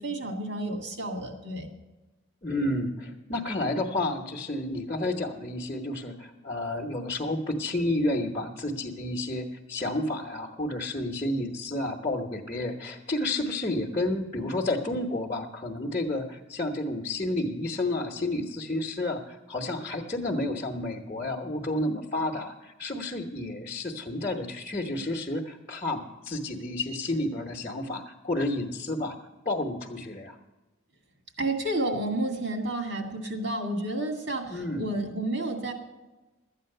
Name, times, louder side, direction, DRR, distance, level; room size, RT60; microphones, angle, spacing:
voice 1, 0.0-1.7 31.4-35.7, right 1 dB, 65° right, 3 dB, 2.0 m, -31 dB
voice 2, 2.4-29.1 29.4-30.4 34.5-34.9, left 2 dB, 30° left, 0 dB, 1.0 m, -31 dB
12.5 x 8.8 x 6.6 m, 1.1 s
head